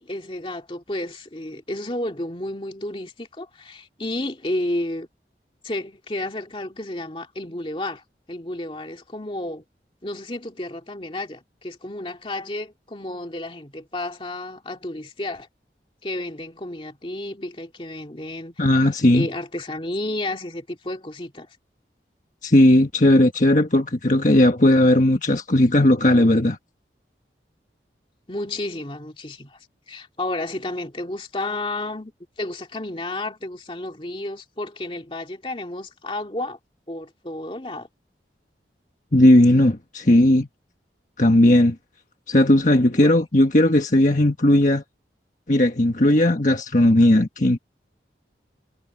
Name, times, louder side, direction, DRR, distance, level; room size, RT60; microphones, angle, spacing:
voice 1, 0.0-5.1 5.6-9.6 10.0-15.5 16.0-18.7 19.1-21.5 28.3-29.6 29.9-32.1 32.4-36.6 36.9-37.9 42.9-43.2, left 1 dB, 30° left, 2.3 m, -31 dB
voice 2, 18.6-19.3 22.4-26.6 39.1-40.5 41.2-41.7 42.3-44.8 45.5-47.6, left 1 dB, 45° left, 1.5 m, -17 dB
head